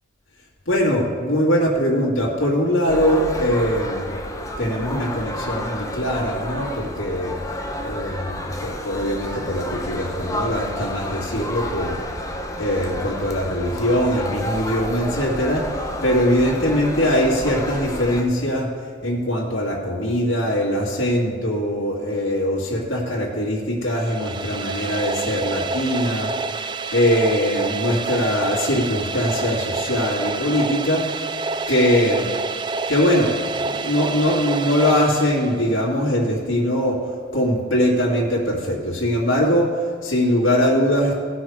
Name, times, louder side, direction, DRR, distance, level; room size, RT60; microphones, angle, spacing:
voice 1, 0.7-4.2 4.6-7.4 7.8-12.0 12.6-15.7 16.0-18.7 19.0-26.3 26.9-31.1 31.7-32.3 32.9-41.1, equal, 80° left, -4 dB, 2.4 m, -21 dB
sound 1, 2.9-18.2, left 1 dB, 15° left, 0.9 m, -30 dB
sound 2, 23.9-35.8, right 4 dB, 25° right, 0.4 m, -28 dB
17.5 x 6.3 x 4.9 m, 2.1 s
head